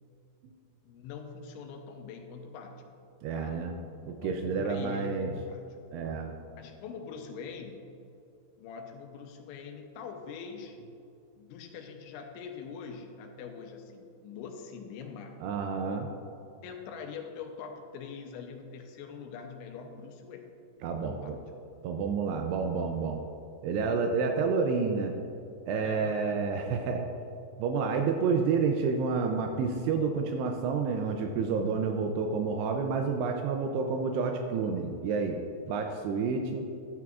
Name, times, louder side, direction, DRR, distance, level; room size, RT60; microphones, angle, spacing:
voice 1, 0.9-3.0 3.4-3.6 4.2-5.8 6.5-7.9 8.6-10.8 11.4-15.4 16.6-20.5 20.9-21.4 25.7-26.4 35.7-36.3, left 6 dB, 90° left, 3 dB, 3.1 m, -43 dB
voice 2, 3.2-3.7 4.1-5.3 5.9-6.3 15.4-16.1 20.8-21.4 21.8-23.2 23.6-25.1 25.7-27.0 27.6-35.4 35.7-36.6, right 5 dB, 85° right, 4 dB, 2.3 m, -29 dB
13.0 x 9.3 x 2.4 m, 2.6 s
omnidirectional pair, 5.4 m